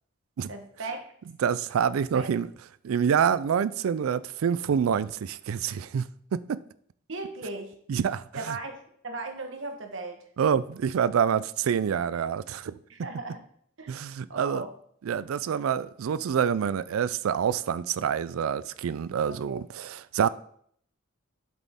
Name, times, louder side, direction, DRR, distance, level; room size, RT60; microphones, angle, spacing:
voice 1, 0.5-1.0 2.1-2.3 7.1-7.7 8.3-10.2 12.9-13.4 13.8-13.9 14.3-14.7 19.3-19.6, right 3 dB, 65° right, 1.2 m, -37 dB
voice 2, 1.4-2.5 2.8-6.0 6.3-6.6 7.9-8.2 10.4-12.8 13.9-14.6 15.1-20.3, right 7 dB, 85° right, 0.4 m, -27 dB
8.1 x 7.3 x 3.6 m
head